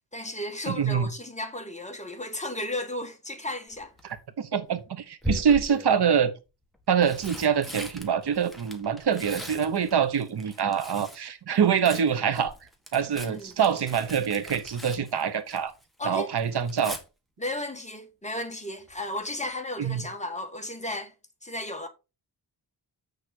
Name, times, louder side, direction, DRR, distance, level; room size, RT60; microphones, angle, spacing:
voice 1, 0.1-3.9 13.2-13.6 16.0-16.3 17.4-21.1 21.4-21.9, left 1 dB, 15° left, 1.6 m, -34 dB
voice 2, 0.7-1.1 4.0-6.3 6.9-12.5 12.9-15.7 16.0-17.0 19.8-20.1, right 7 dB, 65° right, 1.1 m, -25 dB
Tearing, 3.7-4.2 5.2-6.0 6.7-11.3 11.5-15.8 16.1-17.0 18.9-19.2 19.5-19.6, left 1 dB, ahead, 1.8 m, -39 dB
8.2 x 6.6 x 4.4 m
wide cardioid pair, 140°, 43 cm